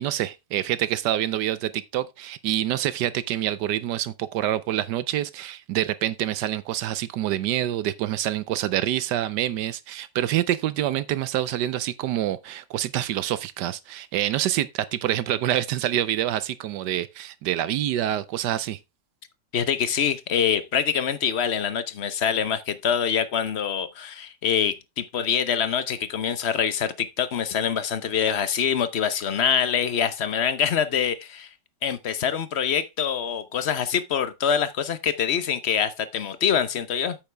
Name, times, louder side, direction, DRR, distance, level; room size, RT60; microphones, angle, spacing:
voice 1, 0.0-18.8, right 12 dB, 80° right, 1.2 m, -26 dB
voice 2, 19.5-31.5 31.8-37.2, left 8 dB, 50° left, 1.0 m, -25 dB
8.6 x 7.8 x 3.4 m
omnidirectional pair, 1.8 m